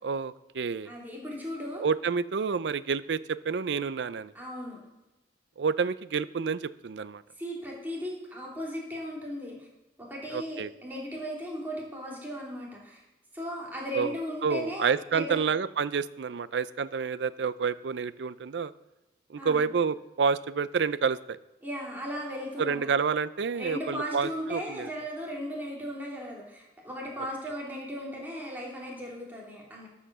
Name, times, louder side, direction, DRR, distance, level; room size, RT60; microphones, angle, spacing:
voice 1, 0.0-0.9 1.8-4.3 5.6-7.2 10.3-10.7 13.9-14.1 14.4-18.7 19.3-21.4 22.6-24.9, right 5 dB, 75° right, 16 dB, 0.5 m, -29 dB
voice 2, 0.8-1.8 4.3-4.8 7.4-9.7 10.0-13.0 13.3-15.4 19.4-19.7 21.6-22.9 23.5-29.9, equal, 10° right, -4 dB, 3.1 m, -37 dB
13.0 x 5.7 x 6.8 m, 1.0 s
head